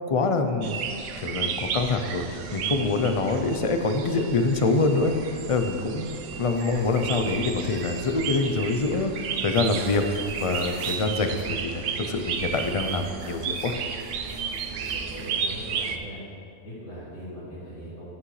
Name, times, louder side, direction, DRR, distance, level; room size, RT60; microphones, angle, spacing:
voice 1, 0.1-0.8 1.2-5.1 5.5-13.8, left 3 dB, 40° left, 6 dB, 0.5 m, -25 dB
sound 1, 0.6-16.0, right 6 dB, 85° right, 1.0 m, -33 dB
sound 2, 6.4-8.7 9.5-11.5 12.1-15.4, right 1 dB, 55° right, 1.7 m, -48 dB
voice 2, 14.7-16.2 16.6-18.2, equal, 85° left, -12 dB, 2.9 m, -40 dB
12.5 x 8.5 x 3.2 m, 2.5 s
omnidirectional pair, 1.2 m